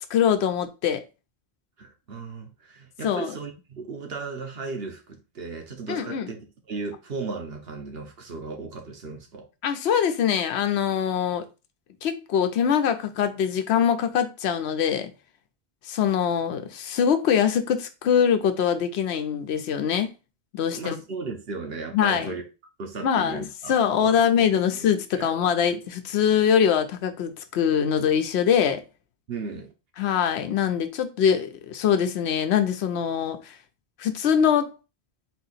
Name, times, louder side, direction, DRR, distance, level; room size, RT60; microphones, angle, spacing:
voice 1, 0.1-1.0 3.0-3.3 5.9-6.3 9.6-11.5 12.0-15.1 15.8-20.1 20.5-21.0 21.9-22.3 23.0-28.8 30.0-33.6 34.0-34.7, left 8 dB, 85° left, 0.9 m, -23 dB
voice 2, 1.8-6.4 6.7-9.5 20.7-22.4 22.8-24.2 24.7-24.9 25.1-25.3 29.3-29.7, right 4 dB, 70° right, 1.2 m, -36 dB
4.1 x 2.8 x 4.0 m
omnidirectional pair, 1.1 m